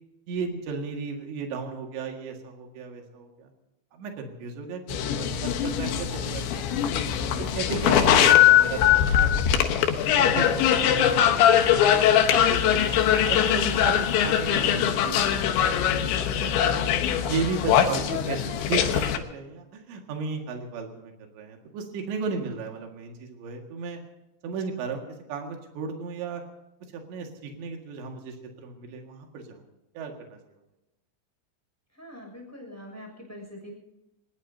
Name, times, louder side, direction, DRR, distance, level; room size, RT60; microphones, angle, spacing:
voice 1, 0.3-3.5 3.9-6.9 7.4-9.7 10.1-10.7 11.2-11.4 11.7-16.8 17.3-24.0 24.4-25.0 25.3-26.4 26.9-29.6 30.0-30.4, right 5 dB, 75° right, 2 dB, 4.3 m, -35 dB
sound 1, 4.9-19.2, left 10 dB, 80° left, 3.6 m, -21 dB
voice 2, 7.1-7.6 31.9-33.7, left 1 dB, 5° left, 1 dB, 6.2 m, -43 dB
24.5 x 20.0 x 2.8 m, 0.95 s
omnidirectional pair, 5.2 m